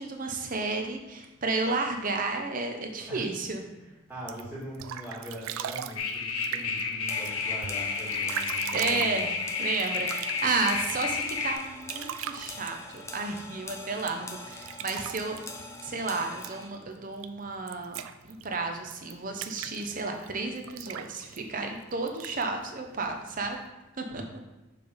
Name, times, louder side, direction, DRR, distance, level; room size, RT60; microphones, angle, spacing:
voice 1, 0.0-3.6 8.7-9.3 9.6-15.4 15.8-18.0 18.3-23.6 24.0-24.2, right 3 dB, 40° right, 4 dB, 0.8 m, -32 dB
voice 2, 4.1-9.3 24.1-24.2, equal, 10° right, -8 dB, 2.2 m, -41 dB
sound 1, 4.1-23.7, right 9 dB, 80° right, 0.4 m, -42 dB
sound 2, 6.0-11.5, left 5 dB, 80° left, 0.8 m, -31 dB
sound 3, 7.1-16.7, left 2 dB, 15° left, 0.4 m, -44 dB
6.7 x 3.5 x 5.1 m, 1.0 s
head